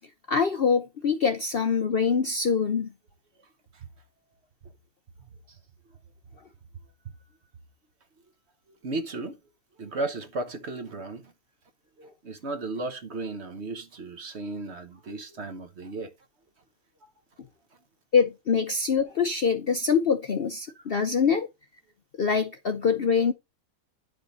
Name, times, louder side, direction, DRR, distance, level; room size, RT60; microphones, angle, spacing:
voice 1, 0.3-2.9 18.1-21.5 22.2-23.3, left 6 dB, 50° left, 0.7 m, -24 dB
voice 2, 8.8-9.4 9.8-11.3 12.0-16.1, right 2 dB, 50° right, 1.2 m, -35 dB
10.0 x 5.1 x 3.9 m
omnidirectional pair, 1.6 m